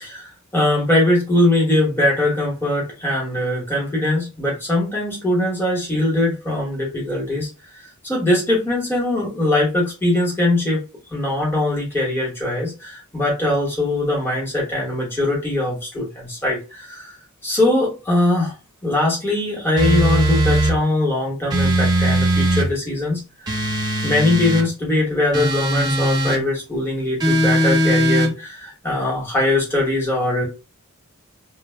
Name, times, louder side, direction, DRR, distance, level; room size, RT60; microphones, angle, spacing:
voice 1, 0.0-7.5 7.8-10.8 11.1-17.1 17.4-18.6 18.8-23.2 24.0-30.4, left 1 dB, 10° left, -4 dB, 0.9 m, -21 dB
sound 1, 19.8-20.8 21.5-22.7 23.5-24.7 25.3-26.4 27.2-28.3, right 1 dB, 20° right, 0.4 m, -19 dB
2.1 x 2.0 x 3.2 m, 0.30 s
head